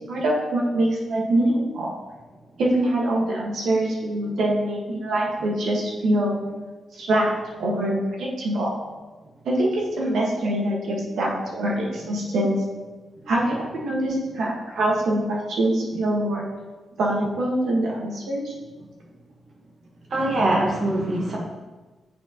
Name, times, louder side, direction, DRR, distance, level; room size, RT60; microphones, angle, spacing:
voice 1, 0.1-1.9 2.6-6.4 6.9-7.3 7.6-8.7 9.4-12.6 13.3-16.4 17.0-18.5, right 1 dB, 80° right, -3 dB, 1.5 m, -24 dB
voice 2, 20.1-21.4, right 1 dB, 50° right, -2 dB, 1.6 m, -22 dB
8.2 x 4.5 x 3.0 m, 1.2 s
cardioid pair, 120°, 0 cm